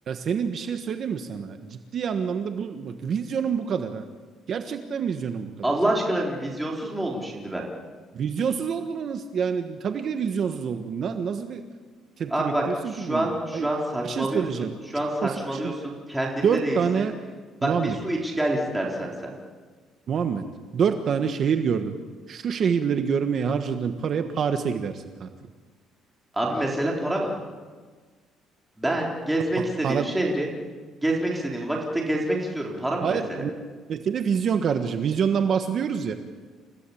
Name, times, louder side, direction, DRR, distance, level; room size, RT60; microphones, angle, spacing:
voice 1, 0.1-4.0 4.5-5.5 8.1-11.6 12.2-13.7 14.0-14.7 15.2-15.8 16.4-17.2 17.6-18.0 20.1-20.4 20.7-21.9 22.3-25.3 29.6-30.1 33.0-33.5 33.9-36.1, right 7 dB, 45° right, 7 dB, 1.4 m, -26 dB
voice 2, 5.6-7.6 12.3-17.0 17.6-19.3 26.3-27.3 28.8-30.5 31.0-33.4, right 1 dB, 5° right, -2 dB, 3.8 m, -27 dB
29.0 x 16.5 x 8.6 m, 1.4 s
cardioid pair, 150°, 0 cm